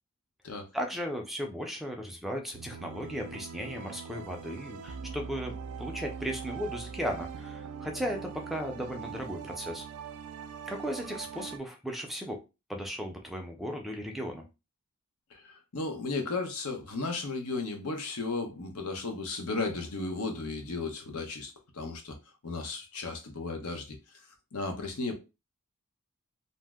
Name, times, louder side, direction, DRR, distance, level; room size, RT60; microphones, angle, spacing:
voice 1, 0.7-9.8 10.7-12.4 12.7-14.4, equal, ahead, 0.4 m, -36 dB
sound 1, 2.5-11.6, right 6 dB, 90° right, 0.4 m, -42 dB
voice 2, 15.3-22.2 22.4-24.0 24.5-25.1, left 3 dB, 85° left, 0.8 m, -35 dB
2.7 x 2.0 x 3.4 m
head